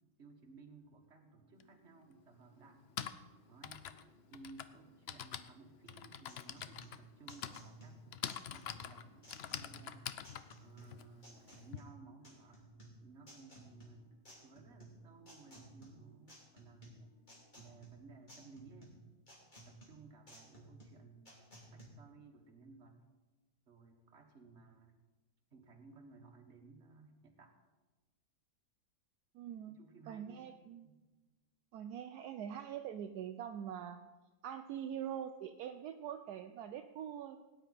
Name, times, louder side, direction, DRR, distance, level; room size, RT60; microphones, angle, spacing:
voice 1, 0.2-2.8 3.5-3.9 4.3-10.1 10.6-12.7 13.0-17.1 17.5-19.0 19.4-23.0 23.7-25.0 25.5-27.5 29.7-30.5 30.8-31.0, right 3 dB, 45° right, 3 dB, 1.7 m, -58 dB
sound 1, 0.7-18.8, right 2 dB, 50° left, 3.3 m, -72 dB
Typing, 1.6-1.7 2.7-11.8, left 9 dB, 70° left, 0.6 m, -46 dB
sound 2, 5.9-21.9, right 1 dB, 30° left, 2.7 m, -57 dB
voice 2, 29.3-29.8 30.1-31.0 31.7-34.0 34.4-37.4, right 9 dB, 75° right, 7 dB, 1.1 m, -44 dB
17.5 x 9.8 x 4.2 m, 1.2 s
omnidirectional pair, 1.7 m